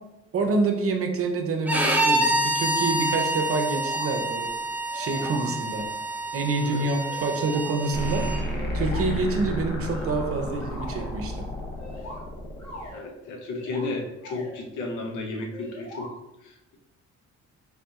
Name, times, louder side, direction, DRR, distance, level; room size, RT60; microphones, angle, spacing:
voice 1, 0.3-4.5 4.9-5.9 6.3-8.5 8.7-11.4, right 3 dB, 50° right, 4 dB, 0.7 m, -27 dB
Bowed string instrument, 1.7-8.4, right 1 dB, 5° right, 0.6 m, -27 dB
sound 1, 3.5-4.1 4.4-4.5 4.9-5.9 6.7-7.7 8.5-9.1 9.8-11.1 11.8-13.1 13.4-13.9 14.2-14.6 15.5-16.1, left 1 dB, 60° left, 1.5 m, -42 dB
sound 2, 7.9-12.9, left 1 dB, 35° left, 0.9 m, -31 dB
voice 2, 12.9-16.1, left 2 dB, 80° left, 3 dB, 0.7 m, -33 dB
3.9 x 3.6 x 2.3 m, 0.94 s
cardioid pair, 90°, 30 cm